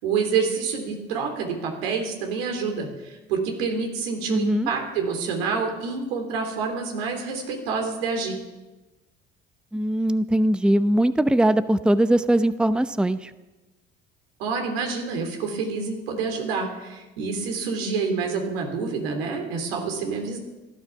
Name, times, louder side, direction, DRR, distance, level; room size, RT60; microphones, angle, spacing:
voice 1, 0.0-8.4 14.4-20.4, right 5 dB, 85° right, 3 dB, 3.5 m, -27 dB
voice 2, 4.3-4.7 9.7-13.3, right 1 dB, 5° right, 13 dB, 0.7 m, -21 dB
16.0 x 12.5 x 7.1 m, 1.1 s
hypercardioid pair, 65°, 29 cm